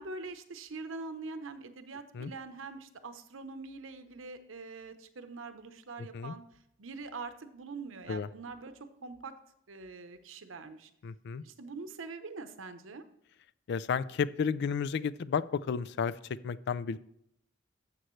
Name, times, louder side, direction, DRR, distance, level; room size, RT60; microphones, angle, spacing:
voice 1, 0.0-6.4 6.8-9.3 9.7-10.9 11.4-13.0, right 3 dB, 75° right, 9 dB, 0.9 m, -44 dB
voice 2, 11.0-11.4 13.7-17.0, left 6 dB, 60° left, 17 dB, 0.4 m, -32 dB
13.0 x 7.7 x 3.2 m, 0.75 s
head